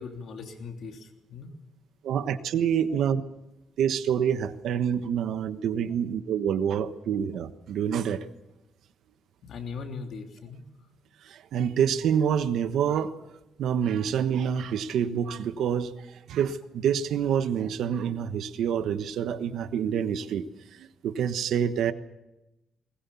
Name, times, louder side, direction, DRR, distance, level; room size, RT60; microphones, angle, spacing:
voice 1, 0.0-1.5 9.4-10.7, left 5 dB, 65° left, 3 dB, 3.3 m, -39 dB
voice 2, 2.0-3.2 3.8-8.2 11.2-13.1 13.6-15.9 16.3-20.5 20.7-21.9, right 8 dB, 80° right, 11 dB, 1.2 m, -27 dB
21.0 x 20.0 x 7.1 m, 0.95 s
cardioid pair, 120°, 0 cm